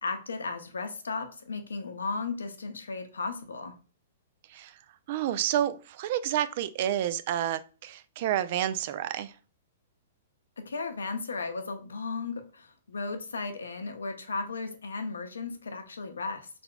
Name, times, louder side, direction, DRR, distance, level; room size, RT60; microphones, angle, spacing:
voice 1, 0.0-3.8 10.6-16.5, left 4 dB, 75° left, 0.7 m, -35 dB
voice 2, 5.1-9.3, right 11 dB, 50° right, 0.4 m, -29 dB
4.4 x 3.9 x 2.2 m
figure-of-eight pair, 110°, 0 cm